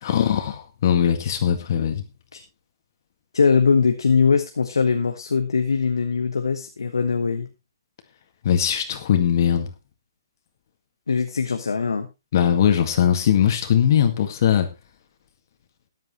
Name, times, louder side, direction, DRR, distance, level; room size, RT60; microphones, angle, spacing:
voice 1, 0.0-2.1 8.4-9.7 12.3-14.7, left 9 dB, 55° left, 6 dB, 2.0 m, -20 dB
voice 2, 3.3-7.5 11.1-12.1, left 5 dB, 85° left, 6 dB, 1.3 m, -21 dB
13.5 x 10.5 x 3.1 m, 0.25 s
hypercardioid pair, 140°, 2 cm